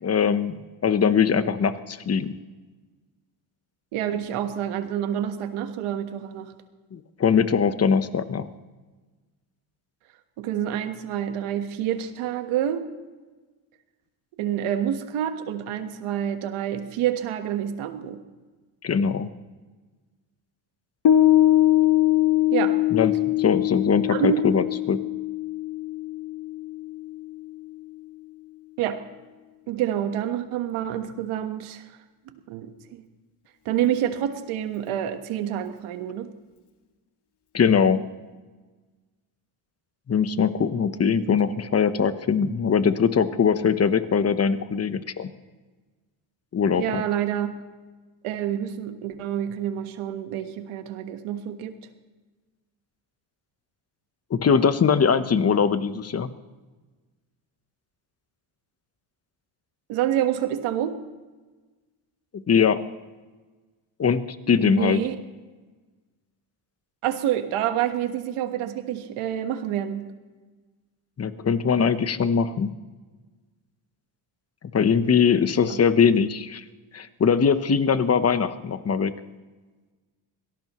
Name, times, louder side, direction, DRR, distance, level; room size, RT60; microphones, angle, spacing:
voice 1, 0.0-2.4 6.9-8.5 18.8-19.3 22.9-25.0 37.5-38.0 40.1-45.3 46.5-47.0 54.3-56.3 62.3-62.8 64.0-64.2 64.5-65.0 71.2-72.7 74.7-76.6 76.9-79.2, left 6 dB, 30° left, 11 dB, 1.0 m, -21 dB
voice 2, 3.9-6.5 10.4-12.8 14.4-18.2 22.5-22.8 24.1-24.4 28.8-29.0 29.7-31.8 32.3-33.0 33.6-36.3 41.2-41.4 46.8-47.6 48.2-51.8 59.9-60.9 64.6-65.1 67.0-70.1 75.7-75.8, right 10 dB, 90° right, 7 dB, 1.5 m, -28 dB
Piano, 21.0-27.8, left 13 dB, 55° left, 1.6 m, -22 dB
25.0 x 18.0 x 3.1 m, 1.3 s
cardioid pair, 95°, 48 cm